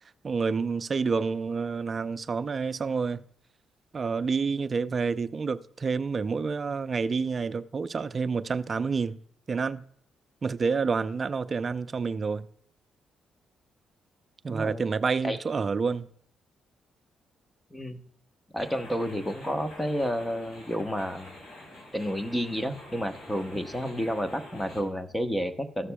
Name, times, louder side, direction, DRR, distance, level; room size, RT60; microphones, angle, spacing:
voice 1, 0.2-3.2 3.9-9.2 9.5-9.9 10.4-12.5 14.4-16.1, right 5 dB, 40° right, 0.5 m, -28 dB
voice 2, 14.5-14.8 15.2-15.4 17.7-18.0 18.5-21.4 21.9-25.9, equal, 10° left, 0.9 m, -30 dB
sound 1, 18.6-24.8, left 1 dB, 60° left, 3.7 m, -47 dB
14.5 x 6.6 x 2.2 m
cardioid pair, 90°, 0 cm